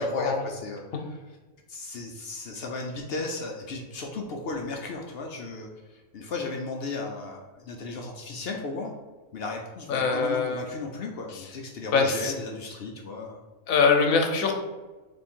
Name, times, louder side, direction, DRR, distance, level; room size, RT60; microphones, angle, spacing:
voice 1, 0.0-1.4 1.7-8.9 9.3-13.4, left 3 dB, 60° left, 1 dB, 0.6 m, -35 dB
voice 2, 9.9-10.6 11.9-12.3 13.7-14.5, left 4 dB, 85° left, 3 dB, 1.1 m, -23 dB
3.5 x 3.1 x 4.3 m, 1.2 s
omnidirectional pair, 1.4 m